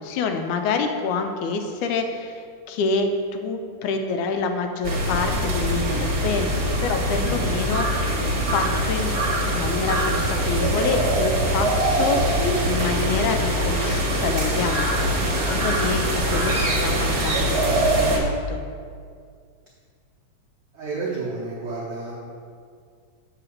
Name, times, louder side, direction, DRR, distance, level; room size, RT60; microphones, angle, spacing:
voice 1, 0.0-7.9 8.4-9.1 9.4-11.7 12.0-12.4 12.6-18.6, left 4 dB, 90° left, 6 dB, 2.1 m, -27 dB
sound 1, 4.8-18.2, right 1 dB, 50° right, 1.2 m, -23 dB
voice 2, 20.7-22.2, right 3 dB, 80° right, -6 dB, 0.9 m, -30 dB
7.7 x 4.1 x 6.3 m, 2.2 s
omnidirectional pair, 3.5 m